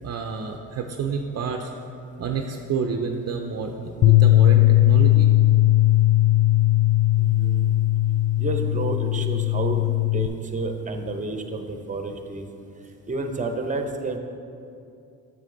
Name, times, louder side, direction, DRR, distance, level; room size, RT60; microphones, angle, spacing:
voice 1, 0.0-1.7 2.2-5.3, right 5 dB, 50° right, 3 dB, 0.6 m, -29 dB
Bass guitar, 4.0-10.3, left 16 dB, 45° left, 0.5 m, -18 dB
voice 2, 7.2-7.7 8.4-9.8 10.1-12.5 13.1-14.2, right 2 dB, 20° right, 5 dB, 0.8 m, -30 dB
7.4 x 6.8 x 3.9 m, 2.6 s
supercardioid pair, 65°, 34 cm